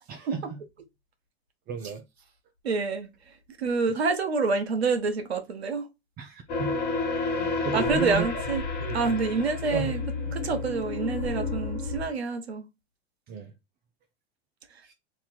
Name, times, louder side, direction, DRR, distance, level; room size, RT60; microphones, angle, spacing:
voice 1, 0.1-0.6 1.7-2.0 6.2-8.3 8.8-9.4 9.7-9.9 13.3-13.5 14.8-14.9, right 6 dB, 30° right, 0.7 m, -35 dB
voice 2, 2.6-3.1 3.6-5.9 7.7-8.6 8.9-10.0 10.3-12.7, right 4 dB, 90° right, 1.0 m, -27 dB
sound 1, 6.5-12.1, left 3 dB, 30° left, 1.5 m, -30 dB
3.1 x 2.7 x 3.9 m
hypercardioid pair, 110°, 31 cm